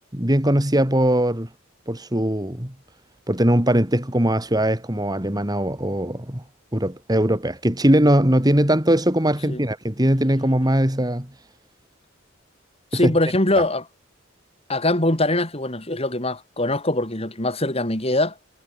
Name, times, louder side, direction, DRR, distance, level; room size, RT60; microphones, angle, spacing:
voice 1, 0.1-1.5 1.9-2.7 3.3-6.4 6.7-11.3 13.0-13.1, right 1 dB, 20° right, 3.1 m, -20 dB
voice 2, 12.9-13.8 14.7-18.3, left 1 dB, 30° left, 4.5 m, -22 dB
head